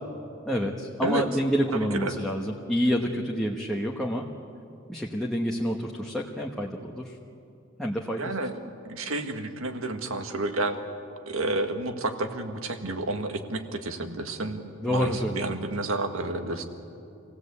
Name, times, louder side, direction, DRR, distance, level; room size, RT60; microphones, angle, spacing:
voice 1, 0.4-4.3 4.9-7.1 7.8-8.3 14.8-15.4, equal, ahead, -2 dB, 1.2 m, -28 dB
voice 2, 1.7-2.1 8.2-8.5 8.9-10.8 11.3-16.6, right 2 dB, 85° right, 6 dB, 1.7 m, -30 dB
26.5 x 17.0 x 8.4 m, 2.7 s
head